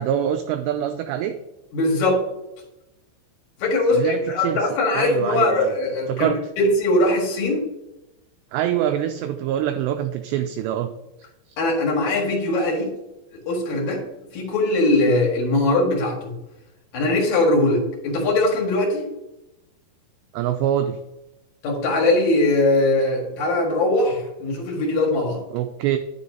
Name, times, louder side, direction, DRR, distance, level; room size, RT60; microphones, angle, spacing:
voice 1, 0.0-1.4 3.9-4.7 4.9-5.8 6.1-6.4 8.5-10.9 11.5-11.6 20.3-21.0 25.5-26.0, right 10 dB, 90° right, 7 dB, 2.4 m, -24 dB
voice 2, 1.7-2.3 3.6-6.3 6.6-7.6 11.6-12.9 13.3-14.0 14.3-16.3 16.9-19.1 21.6-25.4, left 2 dB, 55° left, 0 dB, 2.2 m, -21 dB
9.7 x 7.0 x 2.7 m, 0.93 s
omnidirectional pair, 5.4 m